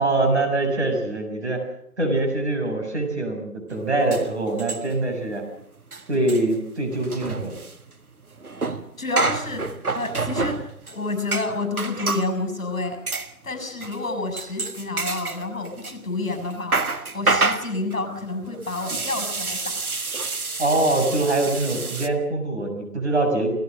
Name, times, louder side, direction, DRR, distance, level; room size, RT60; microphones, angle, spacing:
voice 1, 0.0-1.6 2.0-5.4 6.1-7.6 20.6-23.6, right 2 dB, 45° right, 3 dB, 6.8 m, -23 dB
Kitchen Ambience, 3.7-3.8 4.1-5.1 5.4-5.5 5.8-12.3 13.1-13.3 13.8-14.0 14.4-16.0 16.3-22.1, right 3 dB, 60° right, 1.8 m, -28 dB
voice 2, 9.0-9.7 9.9-10.6 10.9-13.0 13.4-16.8 17.1-19.8, left 2 dB, 55° left, 9 dB, 6.3 m, -29 dB
29.5 x 18.0 x 6.4 m, 0.72 s
figure-of-eight pair, 175°, 49 cm